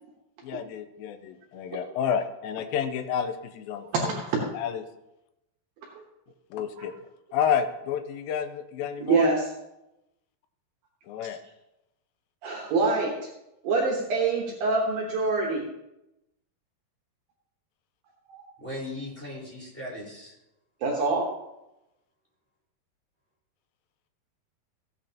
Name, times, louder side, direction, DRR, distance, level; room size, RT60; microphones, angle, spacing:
voice 1, 0.4-4.1 4.5-4.8 6.5-6.9 7.3-9.3 11.1-11.4, left 8 dB, 80° left, 8 dB, 2.3 m, -30 dB
voice 2, 3.9-4.4 6.8-6.9 9.0-9.5 12.4-13.3 13.6-15.7 18.3-18.4 20.8-21.3, right 3 dB, 70° right, -2 dB, 2.8 m, -25 dB
voice 3, 18.6-20.3, left 1 dB, 5° left, -7 dB, 3.7 m, -38 dB
15.5 x 8.8 x 2.9 m, 0.90 s
omnidirectional pair, 4.6 m